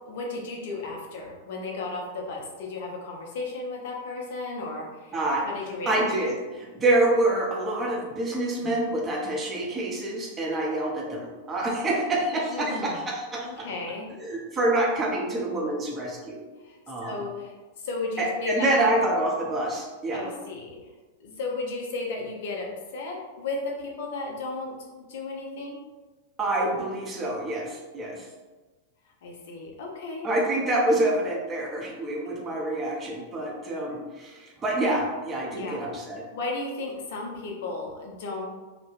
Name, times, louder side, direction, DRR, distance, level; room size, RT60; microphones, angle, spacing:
voice 1, 0.1-5.1 5.4-6.0 12.5-13.0 13.4-14.1 16.6-18.9 20.1-20.8 21.2-25.8 29.2-30.3 35.5-35.8 36.3-38.4, left 3 dB, 55° left, 0 dB, 0.5 m, -34 dB
voice 2, 5.1-5.5 5.9-13.7 14.1-16.4 16.9-17.2 18.2-20.3 26.4-28.3 30.2-36.3, right 1 dB, 20° right, -2 dB, 0.6 m, -27 dB
2.2 x 2.1 x 3.1 m, 1.2 s
figure-of-eight pair, 90°, 0 cm